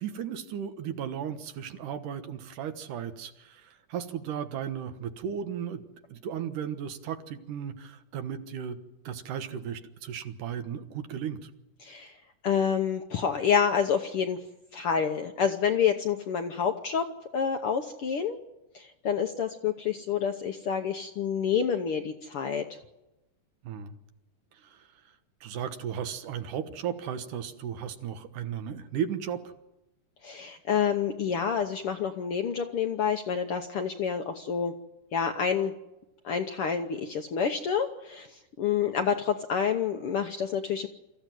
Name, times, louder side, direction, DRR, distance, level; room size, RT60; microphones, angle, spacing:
voice 1, 0.0-3.6 3.9-5.8 6.1-8.8 9.1-11.5 23.6-23.9 25.4-29.5, right 8 dB, 80° right, 8 dB, 2.8 m, -35 dB
voice 2, 11.8-12.2 12.4-14.4 14.7-17.1 17.3-18.4 18.7-22.8 30.2-34.7 35.1-35.7 36.2-40.9, left 7 dB, 65° left, 5 dB, 1.4 m, -28 dB
24.0 x 14.5 x 9.3 m, 0.97 s
omnidirectional pair, 3.6 m